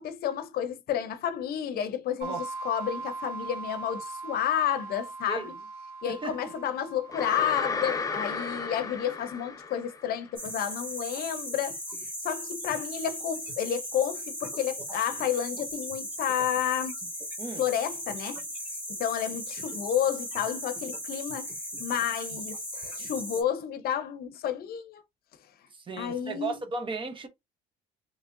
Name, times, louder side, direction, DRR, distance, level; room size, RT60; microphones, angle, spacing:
voice 1, 0.0-5.6 6.0-11.8 12.2-16.9 17.6-18.4 18.9-21.5 21.8-25.0 26.0-26.6, left 9 dB, 65° left, 0.6 m, -31 dB
sound 1, 2.2-8.7, right 4 dB, 70° right, 1.1 m, -41 dB
voice 2, 6.1-6.4 17.4-17.6 25.7-27.3, right 3 dB, 30° right, 0.9 m, -35 dB
sound 2, 7.1-10.2, left 4 dB, 20° left, 0.7 m, -33 dB
sound 3, 10.4-23.4, equal, 10° right, 2.3 m, -37 dB
3.5 x 3.2 x 2.5 m
cardioid pair, 110°, 17 cm